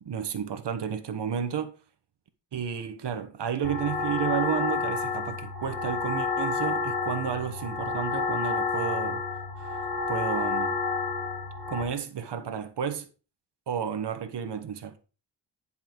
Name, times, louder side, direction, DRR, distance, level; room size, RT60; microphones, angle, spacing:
voice 1, 0.0-1.7 2.5-9.2 9.6-9.8 10.1-10.8 11.7-13.1 13.7-15.0, right 8 dB, 70° right, 1.3 m, -32 dB
sound 1, 3.6-11.8, left 4 dB, 55° left, 2.2 m, -30 dB
10.5 x 5.6 x 4.6 m
wide cardioid pair, 165°, 43 cm